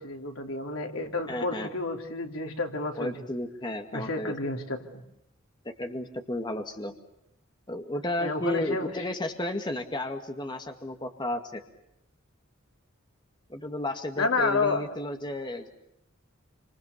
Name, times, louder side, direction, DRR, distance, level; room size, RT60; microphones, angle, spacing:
voice 1, 0.0-3.1 3.9-5.0 8.2-8.9 14.2-14.8, left 3 dB, 85° left, 3 dB, 3.5 m, -30 dB
voice 2, 1.3-1.7 3.0-4.3 5.8-6.9 7.7-11.6 13.5-15.7, left 1 dB, 20° left, 5 dB, 1.9 m, -33 dB
28.5 x 26.5 x 6.9 m, 0.80 s
head